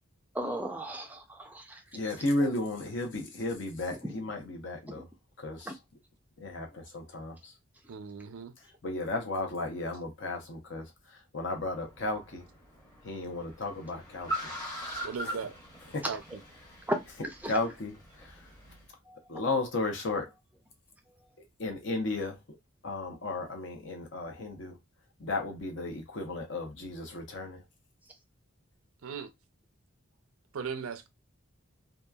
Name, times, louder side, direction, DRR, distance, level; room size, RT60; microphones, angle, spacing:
voice 1, 0.3-1.8 2.4-2.5 4.0-4.1 5.7-5.8 16.9-17.0 17.4-17.5 19.1-19.2, equal, 10° right, 0.4 m, -35 dB
voice 2, 1.9-5.1 5.4-5.8 6.4-7.5 8.8-12.4 13.0-14.5 15.9-16.0 17.5-18.4 19.3-20.3 21.6-22.4 22.8-24.8 25.2-27.6, left 2 dB, 60° left, 0.8 m, -34 dB
voice 3, 7.9-8.5 15.0-15.5 16.1-16.4 29.0-29.3 30.5-31.1, right 6 dB, 85° right, 0.5 m, -38 dB
Car, 11.5-18.9, right 1 dB, 20° left, 0.9 m, -42 dB
2.9 x 2.3 x 2.3 m
head